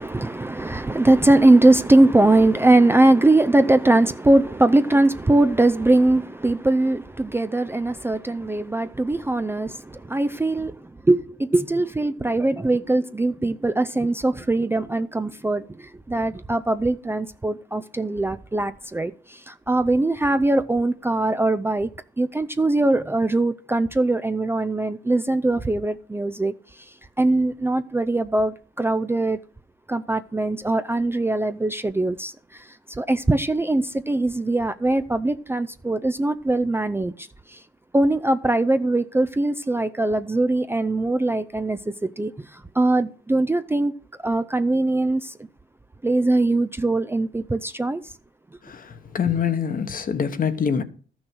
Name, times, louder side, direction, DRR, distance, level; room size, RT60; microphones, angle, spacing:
voice 1, 0.0-21.9 22.2-29.4 29.9-37.6 37.9-43.9 44.2-45.5 46.0-48.1, right 2 dB, 10° right, 0.5 m, -21 dB
voice 2, 48.6-50.8, left 7 dB, 45° left, 1.2 m, -25 dB
13.0 x 6.3 x 6.2 m
cardioid pair, 90°, 20 cm